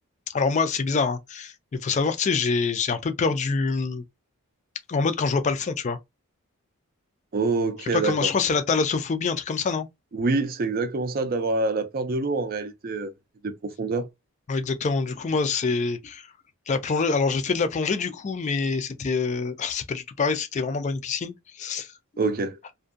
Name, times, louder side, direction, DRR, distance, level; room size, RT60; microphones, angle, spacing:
voice 1, 0.3-4.0 4.9-6.0 7.9-9.9 14.5-16.3 16.7-21.9, left 4 dB, 30° left, 0.3 m, -25 dB
voice 2, 7.3-8.3 10.1-13.1 13.4-14.1 22.2-22.6, right 3 dB, 40° right, 0.4 m, -26 dB
2.5 x 2.2 x 2.4 m
head